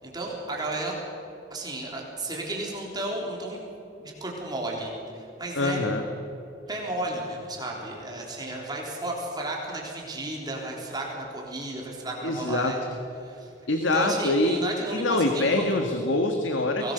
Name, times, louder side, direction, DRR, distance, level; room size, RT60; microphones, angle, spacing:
voice 1, 0.0-0.9 1.5-3.6 4.0-5.8 6.7-12.8 13.2-13.5 13.9-15.6 16.8-16.9, right 2 dB, 20° right, -2 dB, 3.8 m, -33 dB
voice 2, 5.5-6.0 12.2-12.7 13.7-16.9, left 2 dB, 80° left, 5 dB, 1.7 m, -25 dB
24.0 x 18.5 x 6.8 m, 2.9 s
head